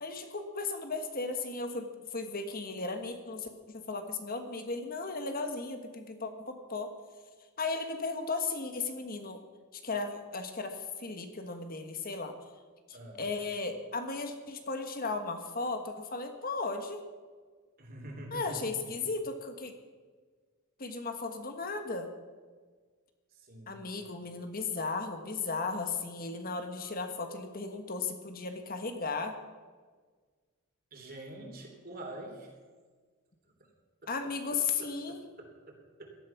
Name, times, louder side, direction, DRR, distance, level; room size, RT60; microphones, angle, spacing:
voice 1, 0.0-6.9 7.6-9.4 9.7-12.3 13.2-17.0 18.3-19.7 20.8-22.1 23.7-29.4 34.1-35.2, left 4 dB, 45° left, 6 dB, 1.5 m, -35 dB
voice 2, 17.8-19.1 23.3-23.8 30.9-32.6 33.6-33.7 34.0-36.2, right 1 dB, 45° right, 2 dB, 3.5 m, -47 dB
17.5 x 12.5 x 5.9 m, 1.5 s
head